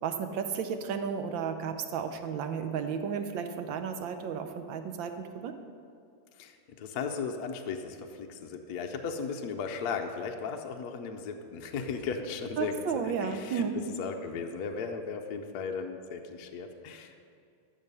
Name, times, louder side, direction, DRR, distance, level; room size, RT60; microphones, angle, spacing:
voice 1, 0.0-5.5 12.6-13.8, right 7 dB, 80° right, 7 dB, 1.5 m, -33 dB
voice 2, 6.3-13.6 14.0-17.2, left 5 dB, 65° left, 4 dB, 1.1 m, -36 dB
14.0 x 6.4 x 5.4 m, 2.4 s
omnidirectional pair, 2.1 m